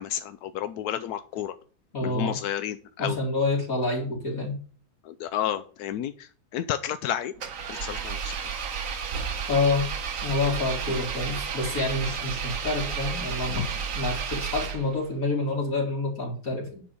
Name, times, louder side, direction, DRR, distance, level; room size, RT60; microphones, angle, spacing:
voice 1, 0.0-1.5 2.0-3.2 5.1-7.3 7.7-8.3 13.5-13.7, left 10 dB, 70° left, 11 dB, 0.9 m, -31 dB
voice 2, 1.9-2.4 3.0-4.6 9.5-9.8 10.2-13.7 13.9-16.8, left 3 dB, 45° left, 1 dB, 2.4 m, -28 dB
Engine, 7.4-15.1, right 6 dB, 50° right, 1.2 m, -32 dB
10.5 x 4.2 x 6.9 m, 0.42 s
omnidirectional pair, 2.1 m